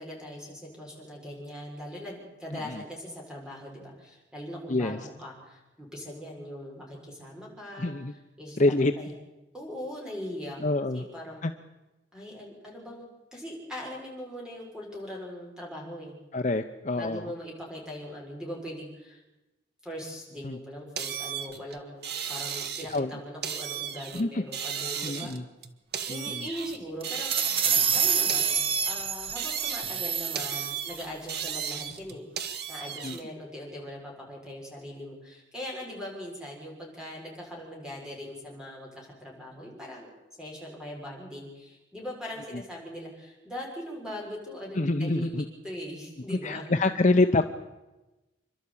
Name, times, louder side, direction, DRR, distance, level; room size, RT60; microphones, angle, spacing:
voice 1, 0.0-7.9 8.4-8.6 9.0-9.1 9.5-10.6 10.9-11.4 12.1-16.2 16.9-19.2 19.8-22.0 22.3-25.4 26.1-27.6 27.9-40.1 40.4-46.7, equal, 5° right, -2 dB, 6.4 m, -40 dB
voice 2, 4.7-5.0 7.8-8.1 8.6-8.9 10.6-11.0 11.4-11.5 16.3-17.2 20.4-20.6 22.9-23.2 24.1-24.4 25.0-25.4 26.1-26.5 33.0-33.2 44.7-45.4 46.4-47.5, left 2 dB, 40° left, 7 dB, 0.8 m, -26 dB
sound 1, 21.0-23.0 23.4-24.2 24.5-26.8 27.0-28.0 28.3-30.0 30.4-33.2, right 8 dB, 55° right, 1.4 m, -35 dB
sound 2, 27.0-31.0, right 7 dB, 30° right, 0.9 m, -27 dB
28.0 x 12.0 x 8.7 m, 1.0 s
head